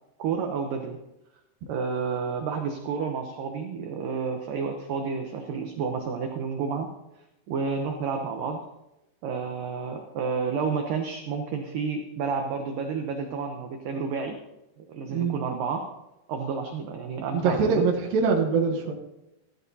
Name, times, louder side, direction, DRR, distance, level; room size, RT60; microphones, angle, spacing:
voice 1, 0.2-1.0 1.7-6.9 7.5-8.6 9.2-14.4 14.9-15.8 16.3-17.9, right 5 dB, 90° right, 4 dB, 1.9 m, -30 dB
voice 2, 17.3-18.9, right 5 dB, 65° right, -1 dB, 2.5 m, -23 dB
15.0 x 13.5 x 2.8 m, 0.93 s
omnidirectional pair, 5.2 m